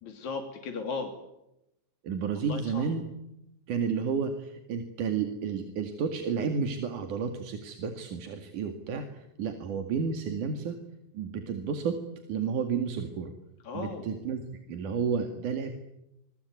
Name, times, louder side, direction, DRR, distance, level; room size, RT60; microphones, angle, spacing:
voice 1, 0.0-1.1 2.5-2.9 13.6-14.1, left 4 dB, 70° left, 3 dB, 4.3 m, -36 dB
voice 2, 2.0-3.0 3.7-10.8 11.1-12.0 12.3-13.3 13.7-14.4 14.7-15.7, right 6 dB, 90° right, 6 dB, 3.7 m, -31 dB
27.0 x 22.5 x 9.6 m, 0.86 s
omnidirectional pair, 3.5 m